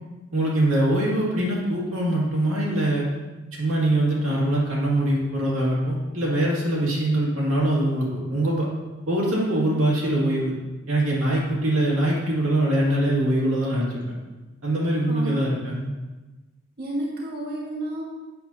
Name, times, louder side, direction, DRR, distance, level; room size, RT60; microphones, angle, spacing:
voice 1, 0.3-3.1 3.5-8.7 9.1-10.5 10.9-14.0 14.6-15.9, right 1 dB, 90° right, -4 dB, 2.2 m, -23 dB
voice 2, 15.1-15.4 16.8-18.0, right 2 dB, 50° right, -4 dB, 1.4 m, -31 dB
7.9 x 7.1 x 2.8 m, 1.2 s
head